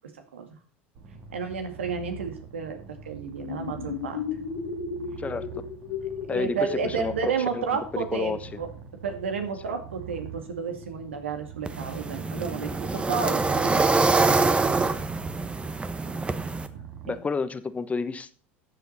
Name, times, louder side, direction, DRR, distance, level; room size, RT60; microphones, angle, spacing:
Purr, 0.9-17.1, right 7 dB, 65° right, 3.3 m, -44 dB
voice 1, 1.3-2.8 3.0-4.2 6.3-8.7 9.0-13.9 17.1-17.2, right 6 dB, 85° right, 6 dB, 2.2 m, -32 dB
sound 1, 3.3-8.7, left 6 dB, 75° left, 3.1 m, -35 dB
voice 2, 5.2-5.6 6.3-7.6 7.9-8.4 9.7-9.8 13.5-13.7 17.0-18.3, left 4 dB, 20° left, 13 dB, 1.1 m, -31 dB
sound 2, 11.7-16.7, right 3 dB, 15° right, 1.1 m, -25 dB
13.0 x 8.1 x 4.2 m, 0.40 s
hypercardioid pair, 80°, 6 cm